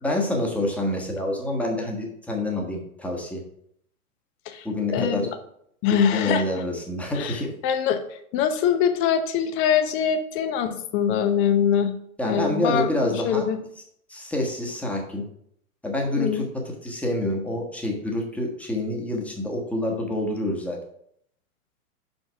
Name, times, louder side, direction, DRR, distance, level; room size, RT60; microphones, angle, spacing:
voice 1, 0.0-3.4 4.6-5.3 6.1-7.5 12.2-13.5 14.1-15.2 15.8-20.8, left 1 dB, 5° left, 0 dB, 1.3 m, -27 dB
voice 2, 4.9-5.3 5.8-6.5 7.1-11.9 12.2-13.6 16.2-16.4, left 8 dB, 30° left, 8 dB, 0.7 m, -23 dB
5.5 x 5.3 x 4.7 m, 0.70 s
figure-of-eight pair, 105°, 44 cm